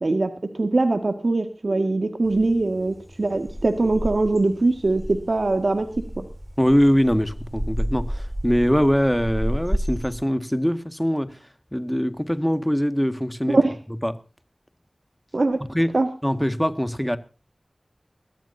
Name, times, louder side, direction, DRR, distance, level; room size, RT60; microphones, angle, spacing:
voice 1, 0.0-5.9 6.2-6.3 13.5-13.8 15.3-15.6 15.9-16.1, right 2 dB, 75° right, 1.9 m, -22 dB
sound 1, 2.2-10.2, equal, 10° right, 2.2 m, -31 dB
voice 2, 6.6-11.4 11.7-13.6 14.0-14.2 15.7-15.9 16.2-17.2, equal, 5° left, 1.8 m, -22 dB
22.5 x 15.0 x 2.7 m
wide cardioid pair, 45°, 0 cm